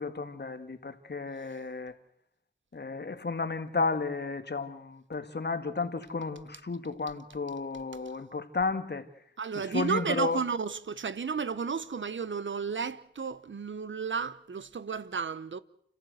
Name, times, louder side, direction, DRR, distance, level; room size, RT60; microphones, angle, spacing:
voice 1, 0.0-1.9 2.7-9.1 9.7-10.4, left 4 dB, 60° left, 1.9 m, -33 dB
voice 2, 9.4-15.6, right 5 dB, 80° right, 1.0 m, -33 dB
29.0 x 14.5 x 8.0 m
wide cardioid pair, 50°, 19 cm